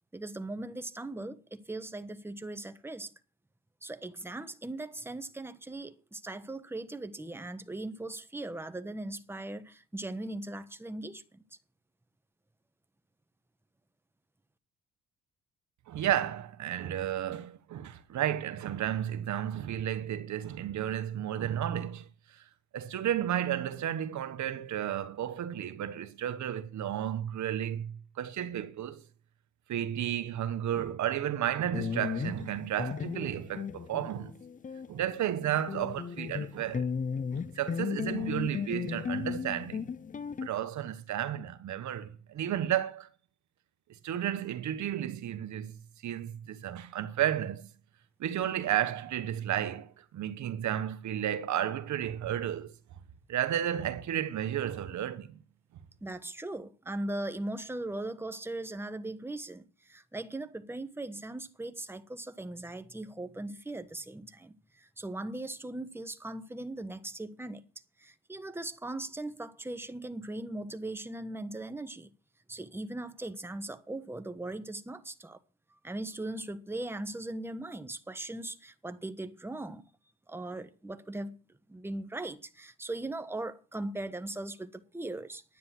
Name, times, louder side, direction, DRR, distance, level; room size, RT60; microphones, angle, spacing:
voice 1, 0.1-3.1 3.8-11.4 56.0-67.6 68.0-72.1 72.5-75.4 75.8-79.8 80.3-81.4 81.7-85.6, right 2 dB, 10° right, 1.3 m, -39 dB
voice 2, 15.9-22.5 22.7-29.0 29.7-34.3 34.9-36.9 37.3-39.8 40.4-43.1 43.9-47.7 48.2-52.7 53.3-55.4, right 11 dB, 70° right, 1.3 m, -33 dB
sound 1, 31.7-35.0 35.2-40.5, left 6 dB, 25° left, 0.5 m, -35 dB
10.5 x 9.4 x 6.0 m
cardioid pair, 90°, 30 cm